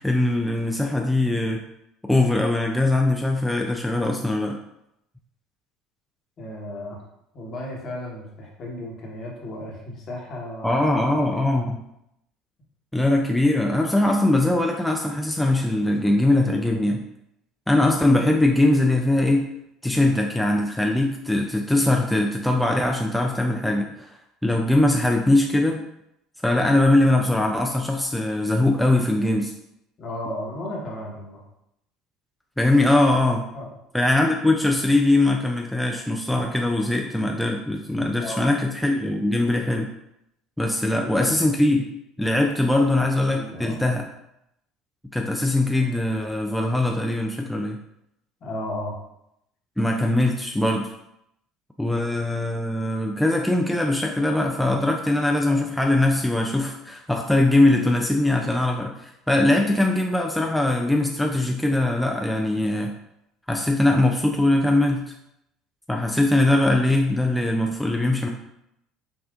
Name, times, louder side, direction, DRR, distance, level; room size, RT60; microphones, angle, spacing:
voice 1, 0.0-1.6 2.0-4.6 10.6-11.8 12.9-17.1 17.7-19.5 19.8-23.9 24.4-25.8 26.4-29.5 32.6-33.5 33.9-39.9 40.6-41.8 42.2-44.0 45.1-47.8 49.8-50.9 51.8-62.9 63.5-65.1 65.9-68.3, left 1 dB, 5° left, 1 dB, 0.4 m, -21 dB
voice 2, 6.4-7.0 7.3-11.5 30.0-31.4 33.5-33.7 38.2-38.5 40.9-41.3 43.3-43.8 48.4-48.9, left 1 dB, 50° left, -2 dB, 1.2 m, -34 dB
5.6 x 2.4 x 2.5 m, 0.81 s
hypercardioid pair, 70°, 0 cm